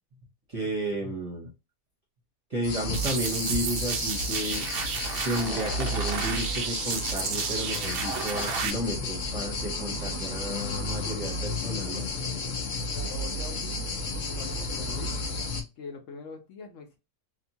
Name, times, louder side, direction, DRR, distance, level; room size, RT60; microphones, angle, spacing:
voice 1, 0.5-1.5 2.5-4.7 5.2-12.0, right 1 dB, 35° right, -1 dB, 0.7 m, -32 dB
sound 1, 2.6-15.6, left 2 dB, 50° left, 0.6 m, -32 dB
sound 2, 2.9-8.7, right 6 dB, 75° right, 0.5 m, -32 dB
voice 2, 12.9-13.9 14.1-15.2 15.8-17.0, left 5 dB, 65° left, 4 dB, 1.0 m, -43 dB
2.8 x 2.3 x 2.6 m, 0.26 s
omnidirectional pair, 1.5 m